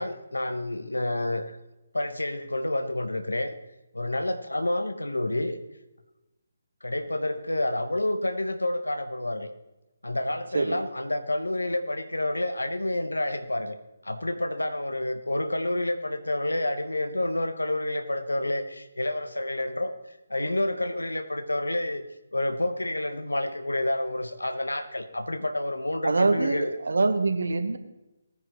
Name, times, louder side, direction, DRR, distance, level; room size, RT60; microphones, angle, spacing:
voice 1, 0.0-1.6 1.9-3.5 3.9-5.6 6.8-9.5 10.0-13.8 14.0-19.9 20.3-22.0 22.3-26.7, left 1 dB, 85° left, 8 dB, 1.3 m, -29 dB
voice 2, 26.0-27.8, right 3 dB, 70° right, 8 dB, 1.3 m, -24 dB
19.0 x 9.7 x 3.2 m, 1.0 s
figure-of-eight pair, 150°, 0 cm